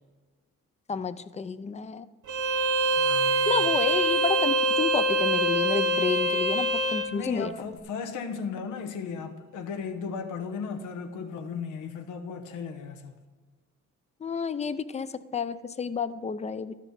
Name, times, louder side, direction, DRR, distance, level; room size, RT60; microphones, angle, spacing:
voice 1, 0.9-2.1 3.5-7.5 14.2-16.7, left 5 dB, 20° left, 14 dB, 0.5 m, -30 dB
Bowed string instrument, 2.3-7.1, right 1 dB, 80° right, 0.8 m, -24 dB
voice 2, 3.0-3.8 7.1-13.1, left 5 dB, 90° left, 6 dB, 1.0 m, -36 dB
13.0 x 6.0 x 5.9 m, 1.3 s
cardioid pair, 90°, 30 cm